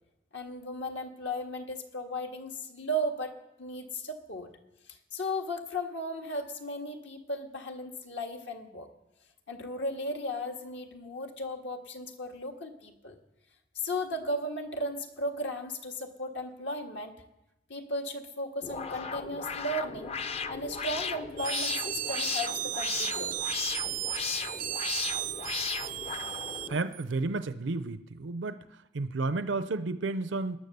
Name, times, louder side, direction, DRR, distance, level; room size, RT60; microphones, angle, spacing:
voice 1, 0.3-3.3 3.6-4.5 5.1-8.9 9.5-13.2 13.8-17.1 17.7-20.1 20.5-23.4, equal, 75° left, 3 dB, 1.7 m, -35 dB
sound 1, 18.6-26.8, left 6 dB, 35° left, 0.5 m, -36 dB
sound 2, 21.4-27.1, right 12 dB, 45° right, 0.4 m, -35 dB
voice 2, 26.7-28.6 28.9-30.6, right 3 dB, 90° right, 11 dB, 0.6 m, -32 dB
19.0 x 10.5 x 6.7 m, 0.94 s
head